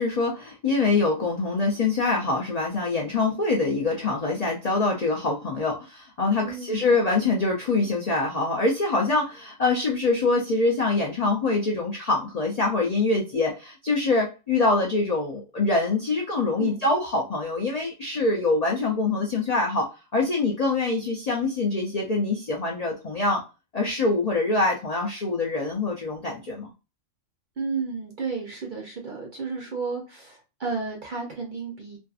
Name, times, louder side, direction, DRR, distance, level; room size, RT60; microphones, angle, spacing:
voice 1, 0.0-23.4 23.7-26.7, left 3 dB, 75° left, -1 dB, 0.3 m, -24 dB
voice 2, 6.4-7.0 16.6-16.8 27.6-32.0, right 4 dB, 55° right, 1 dB, 0.6 m, -32 dB
2.6 x 2.4 x 2.3 m, 0.30 s
omnidirectional pair, 1.4 m